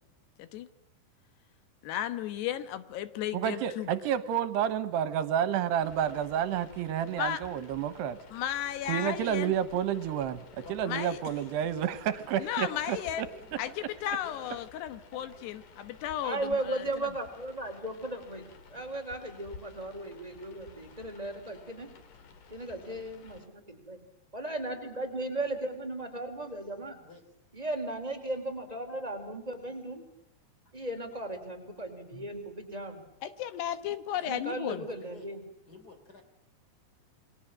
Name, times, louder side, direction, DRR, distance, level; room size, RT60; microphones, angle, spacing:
voice 1, 1.8-3.9 7.2-7.4 8.3-9.5 10.9-11.2 12.4-13.3 13.6-16.8 33.2-34.9, left 11 dB, 80° left, 12 dB, 3.3 m, -34 dB
voice 2, 3.3-8.2 8.9-10.4 10.7-13.3, right 9 dB, 80° right, 13 dB, 3.2 m, -30 dB
sound 1, 5.8-23.5, left 5 dB, 50° left, 3.5 m, -53 dB
voice 3, 10.6-11.1 12.7-14.5 27.0-27.2 34.7-35.3 35.7-36.2, left 2 dB, 25° left, 6 dB, 3.5 m, -50 dB
voice 4, 16.2-21.9 22.5-24.0 24.3-27.0 27.5-30.0 30.7-33.0 34.2-35.5, right 2 dB, 10° right, 2 dB, 3.9 m, -36 dB
28.5 x 22.5 x 7.6 m, 0.76 s
omnidirectional pair, 4.8 m